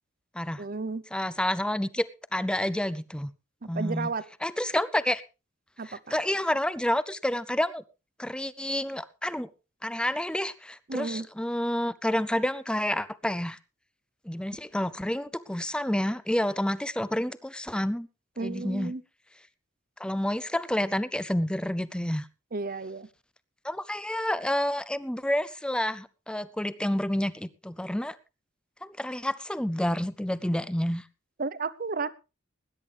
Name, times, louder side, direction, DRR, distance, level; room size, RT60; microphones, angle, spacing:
voice 1, 0.6-1.0 3.6-4.2 5.8-6.0 10.9-11.3 18.4-19.0 22.5-23.1 31.4-32.1, right 4 dB, 45° right, 18 dB, 0.8 m, -32 dB
voice 2, 1.1-3.3 3.7-4.1 4.4-5.2 5.8-7.8 8.2-9.5 9.8-13.6 14.3-18.1 18.4-18.9 20.0-22.3 23.6-28.2 28.8-31.0, left 1 dB, 5° left, 17 dB, 0.6 m, -29 dB
20.5 x 10.5 x 3.4 m, 0.29 s
head